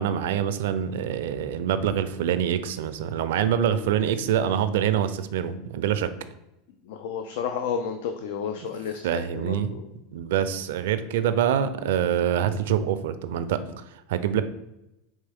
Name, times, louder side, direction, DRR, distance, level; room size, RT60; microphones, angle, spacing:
voice 1, 0.0-6.1 9.0-9.7 10.1-14.4, right 9 dB, 80° right, 11 dB, 0.4 m, -25 dB
voice 2, 6.9-9.8, left 7 dB, 75° left, 7 dB, 0.3 m, -32 dB
4.4 x 3.2 x 3.4 m, 0.91 s
supercardioid pair, 115°, 0 cm